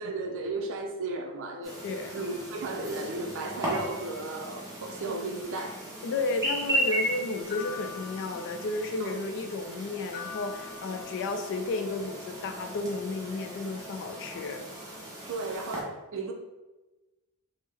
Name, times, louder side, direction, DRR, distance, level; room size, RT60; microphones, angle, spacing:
voice 1, 0.0-1.8 2.1-5.8 9.0-9.2 15.3-16.3, right 3 dB, 60° right, 3 dB, 0.5 m, -34 dB
Chirp tweet, 1.6-15.8, right 1 dB, 15° right, 0.8 m, -36 dB
voice 2, 1.8-2.2 6.0-14.7, left 3 dB, 55° left, 6 dB, 0.3 m, -33 dB
sound 1, 7.5-9.0 10.1-11.6, left 8 dB, 30° left, 0.9 m, -43 dB
3.4 x 2.0 x 3.3 m, 1.1 s
head